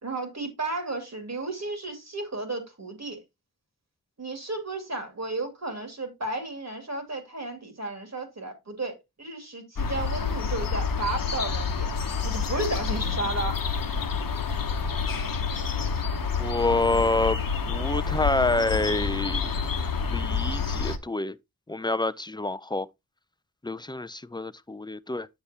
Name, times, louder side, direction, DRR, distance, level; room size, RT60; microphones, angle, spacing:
voice 1, 0.0-3.2 4.2-11.9 12.2-13.6, right 2 dB, 45° right, 2.4 m, -33 dB
sound 1, 9.8-21.0, left 5 dB, 65° left, 0.9 m, -28 dB
voice 2, 16.4-17.4 17.7-19.5 20.0-21.4 21.7-22.9 23.6-25.3, left 2 dB, 15° left, 0.4 m, -27 dB
8.2 x 6.8 x 2.8 m
wide cardioid pair, 55°, 37 cm